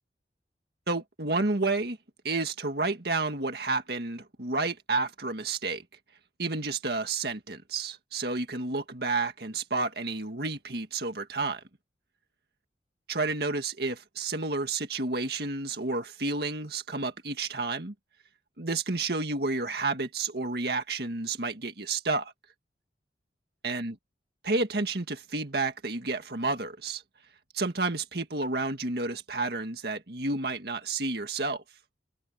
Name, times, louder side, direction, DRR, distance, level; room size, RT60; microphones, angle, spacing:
voice 1, 0.9-2.0 2.2-5.8 6.4-11.6 13.1-17.9 18.6-22.3 23.6-23.9 24.4-27.0 27.5-31.6, right 3 dB, 60° right, 1.9 m, -30 dB
head